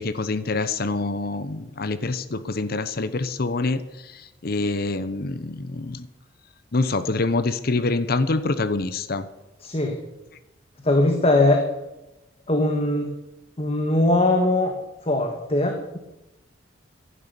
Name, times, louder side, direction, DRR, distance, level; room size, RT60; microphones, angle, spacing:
voice 1, 0.0-6.1 6.7-9.3, left 3 dB, 50° left, 13 dB, 0.8 m, -26 dB
voice 2, 9.6-10.0 10.8-11.7 12.5-13.1 13.6-14.8 15.0-16.0, left 2 dB, 30° left, 4 dB, 1.5 m, -20 dB
15.5 x 11.0 x 6.9 m, 0.99 s
head